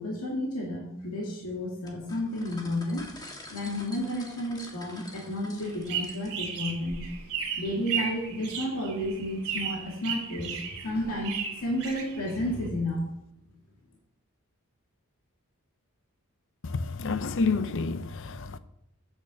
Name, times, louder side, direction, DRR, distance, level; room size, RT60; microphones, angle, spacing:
voice 1, 0.0-3.1 3.5-7.1 7.6-10.5 10.8-11.4 11.6-13.1, left 1 dB, 75° left, 2.2 m, -31 dB
sound 1, 1.9-6.5, left 1 dB, 20° left, 1.7 m, -47 dB
sound 2, 5.6-12.7, right 7 dB, 85° right, 2.5 m, -35 dB
voice 2, 16.6-18.6, left 4 dB, 60° left, 0.7 m, -29 dB
8.2 x 7.0 x 7.0 m
head